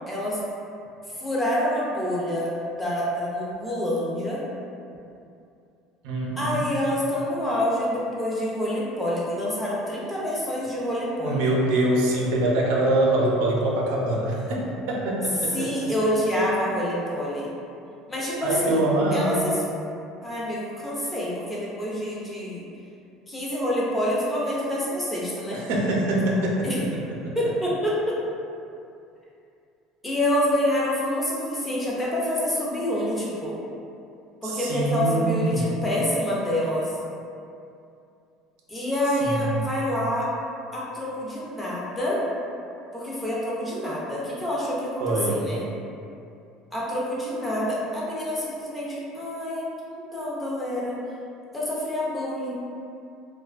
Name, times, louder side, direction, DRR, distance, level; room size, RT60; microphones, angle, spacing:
voice 1, 0.1-0.4 1.1-4.4 6.4-11.5 15.5-17.5 18.1-18.8 19.1-19.6 20.2-22.6 23.3-25.6 26.6-26.8 27.4-28.2 30.0-33.6 34.4-36.9 38.7-40.3 40.7-42.2 42.9-45.6 46.7-51.0 51.5-52.6, left 1 dB, 10° left, -6 dB, 0.4 m, -27 dB
voice 2, 6.0-6.6 11.2-15.7 18.4-19.5 25.5-26.7 27.2-27.3 34.4-35.6 39.2-39.6 45.0-45.4, right 1 dB, 80° right, -2 dB, 0.4 m, -24 dB
2.4 x 2.2 x 2.4 m, 2.6 s
cardioid pair, 160°, 0 cm